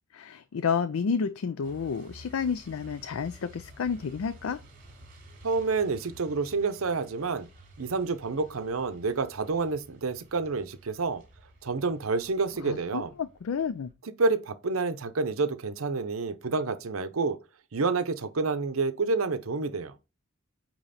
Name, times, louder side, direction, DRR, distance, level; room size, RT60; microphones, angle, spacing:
voice 1, 0.1-4.6 12.6-13.9, left 6 dB, 85° left, 0.4 m, -30 dB
Truck, 1.6-13.9, equal, 45° right, 3.3 m, -52 dB
voice 2, 5.4-7.5 7.8-11.2 11.6-13.1 14.2-17.4 17.7-20.0, right 4 dB, 85° right, 0.7 m, -28 dB
8.8 x 3.0 x 4.1 m
head